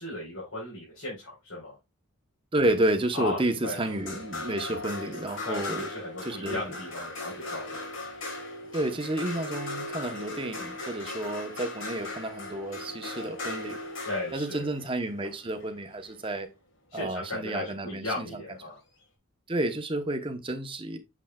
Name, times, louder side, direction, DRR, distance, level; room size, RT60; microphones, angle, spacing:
voice 1, 0.0-1.8 3.1-3.8 5.5-7.9 14.0-14.7 16.9-18.8, left 2 dB, 80° left, 3.8 m, -36 dB
voice 2, 2.5-5.9 6.3-6.6 8.7-13.8 14.3-16.5 16.9-18.4 19.5-21.0, right 1 dB, 25° right, 0.8 m, -30 dB
sound 1, 3.8-16.2 17.8-17.9, left 2 dB, 60° left, 1.6 m, -38 dB
7.1 x 6.4 x 2.3 m
head